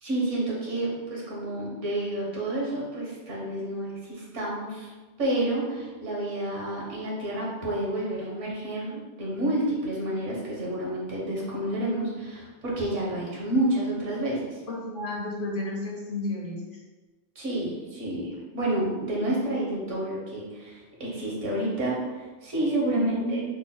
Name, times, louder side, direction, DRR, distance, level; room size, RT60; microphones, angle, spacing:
voice 1, 0.0-4.9 5.2-14.6 17.3-23.4, right 1 dB, 75° right, -4 dB, 1.4 m, -29 dB
voice 2, 14.7-16.6 22.9-23.4, left 2 dB, 55° left, -2 dB, 0.7 m, -32 dB
4.0 x 2.2 x 3.8 m, 1.2 s
omnidirectional pair, 1.3 m